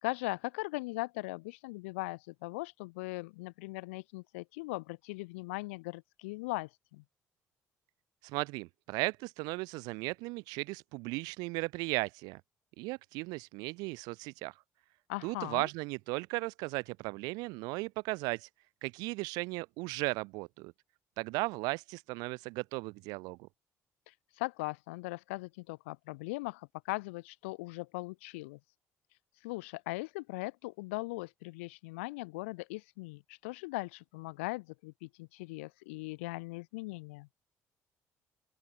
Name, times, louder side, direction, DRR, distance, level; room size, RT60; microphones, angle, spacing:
voice 1, 0.0-7.0 15.1-15.7 24.1-28.6 29.4-37.3, left 24 dB, 90° left, 4.7 m, -39 dB
voice 2, 8.2-12.4 12.8-14.5 15.2-18.5 18.8-20.7 21.2-23.4, right 25 dB, 80° right, 3.8 m, -36 dB
open air
hypercardioid pair, 60°, 7 cm